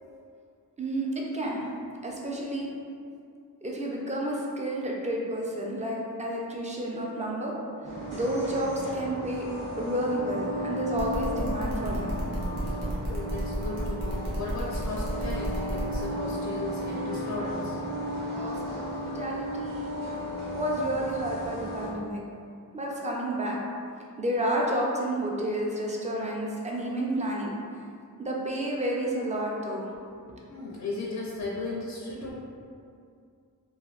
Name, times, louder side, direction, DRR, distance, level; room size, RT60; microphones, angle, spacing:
voice 1, 0.8-1.6 2.0-2.7 3.6-7.5 8.1-9.4 9.8-12.2 18.3-18.6 19.1-19.9 20.5-22.2 22.7-23.6 24.2-27.5 28.2-29.9 30.2-30.4 32.2-32.3, right 1 dB, 20° right, -3 dB, 0.4 m, -30 dB
sound 1, 7.8-21.9, equal, 55° right, 1.2 m, -34 dB
sound 2, 11.0-16.0, right 1 dB, 80° right, 0.8 m, -35 dB
voice 2, 13.0-17.8 30.5-32.3, left 2 dB, 50° left, -4 dB, 0.5 m, -36 dB
3.2 x 2.3 x 2.4 m, 2.4 s
wide cardioid pair, 75°, 38 cm